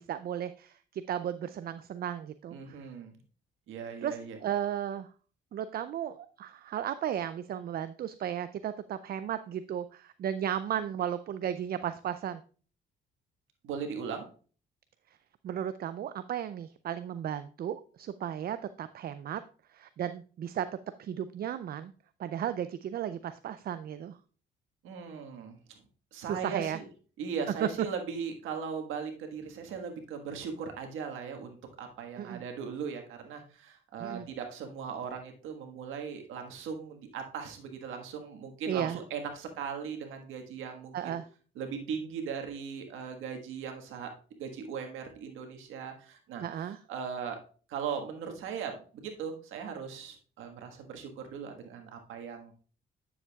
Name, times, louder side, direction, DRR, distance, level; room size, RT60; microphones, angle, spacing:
voice 1, 0.0-2.9 4.0-5.1 5.5-12.4 15.4-19.4 19.7-20.7 21.0-21.9 22.2-24.2 26.3-26.8 27.6-27.7 32.2-32.4 34.0-34.3 38.7-39.0 40.9-41.2 46.4-46.8, right 10 dB, 50° right, 12 dB, 0.4 m, -35 dB
voice 2, 2.5-3.2 3.7-4.4 13.6-14.3 24.8-25.8 26.1-26.8 27.2-41.2 41.5-44.1 44.4-47.4 47.7-52.5, right 6 dB, 90° right, 4 dB, 1.5 m, -39 dB
9.9 x 7.1 x 2.3 m, 0.39 s
cardioid pair, 90°, 20 cm